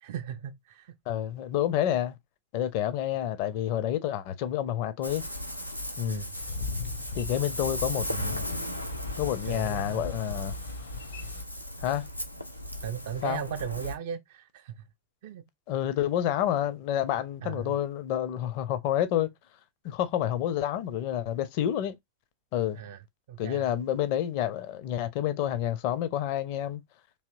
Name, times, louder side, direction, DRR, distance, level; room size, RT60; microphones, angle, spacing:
voice 1, 0.0-0.9 6.1-6.3 9.5-10.0 12.8-14.8 15.2-15.4 16.1-16.3 17.4-17.7 22.7-23.0 23.3-23.6, right 8 dB, 55° right, 0.4 m, -37 dB
voice 2, 1.1-2.2 2.5-5.2 6.0-6.2 7.2-8.5 9.2-10.5 11.8-12.0 13.2-13.4 15.7-19.3 19.8-22.0 22.5-22.8 23.4-26.8, left 11 dB, 45° left, 0.6 m, -29 dB
Ocean, 5.0-13.9, equal, 90° left, 0.6 m, -37 dB
Boat Water vehicle, 6.4-11.4, left 3 dB, 65° left, 0.9 m, -38 dB
3.4 x 2.9 x 2.5 m
figure-of-eight pair, 90°, 0 cm